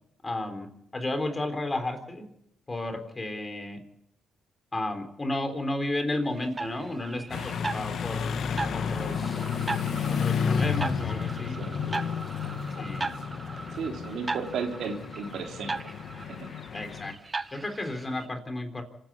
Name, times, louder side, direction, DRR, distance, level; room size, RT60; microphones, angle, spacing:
voice 1, 0.2-0.7 0.9-2.3 2.7-3.8 4.7-8.4 8.7-9.4 10.1-11.6 12.8-13.1 16.7-17.1 17.5-18.8, left 1 dB, 25° left, 7 dB, 3.7 m, -33 dB
sound 1, 6.4-18.3, right 3 dB, 25° right, 1.1 m, -38 dB
sound 2, 7.3-17.1, left 6 dB, 65° left, 1.3 m, -31 dB
voice 2, 13.7-15.8 16.2-16.5, right 5 dB, 70° right, 3 dB, 3.7 m, -34 dB
26.5 x 10.5 x 9.6 m, 0.75 s
cardioid pair, 90°, 0 cm